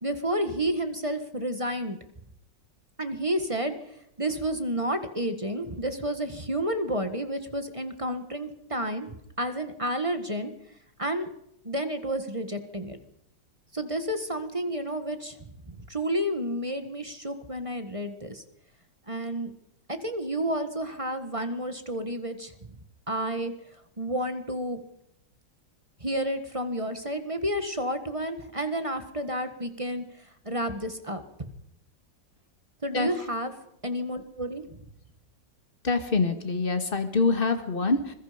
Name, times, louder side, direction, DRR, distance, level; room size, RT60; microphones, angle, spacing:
voice 1, 0.0-2.0 3.0-3.7 4.2-10.5 11.0-11.3 11.6-13.0 13.7-15.4 15.7-18.4 19.1-19.5 19.9-22.5 23.1-23.5 24.0-24.8 26.0-30.0 30.4-31.5 32.8-33.5 33.8-34.8, right 1 dB, 20° right, 8 dB, 1.4 m, -30 dB
voice 2, 35.8-38.1, left 3 dB, 30° left, 8 dB, 2.1 m, -25 dB
26.0 x 21.5 x 5.1 m, 0.77 s
omnidirectional pair, 2.0 m